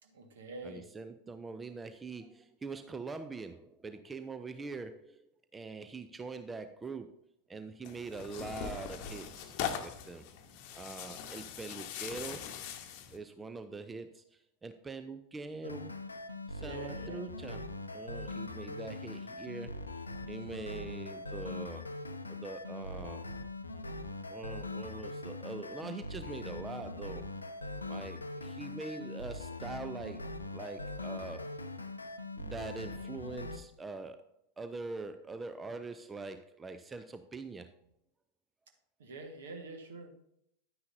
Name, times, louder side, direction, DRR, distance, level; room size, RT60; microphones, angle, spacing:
voice 1, 0.0-0.9 16.6-17.3 39.0-40.1, right 3 dB, 60° right, 5 dB, 1.6 m, -46 dB
voice 2, 0.6-7.2 7.5-9.6 9.8-10.3 10.7-12.5 13.1-15.9 16.5-17.7 17.9-20.0 20.3-21.9 22.3-23.3 24.3-27.3 27.9-31.5 32.4-34.3 34.6-37.7, right 3 dB, 15° right, 10 dB, 0.5 m, -43 dB
Tearing, 7.8-13.2, left 8 dB, 45° left, 1.0 m, -41 dB
sound 1, 15.6-33.6, left 2 dB, 80° left, 0.6 m, -42 dB
10.5 x 9.5 x 2.7 m, 0.74 s
figure-of-eight pair, 90°, 0 cm